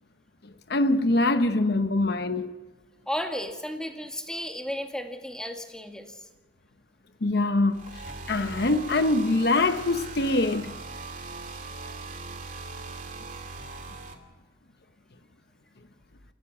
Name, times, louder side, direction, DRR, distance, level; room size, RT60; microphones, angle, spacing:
voice 1, 0.4-2.5 7.2-10.7, left 2 dB, 65° left, 0.9 m, -24 dB
voice 2, 3.1-6.2, equal, 5° left, 2.0 m, -34 dB
sound 1, 7.7-14.1, right 3 dB, 45° right, 2.7 m, -40 dB
28.0 x 15.0 x 6.1 m
head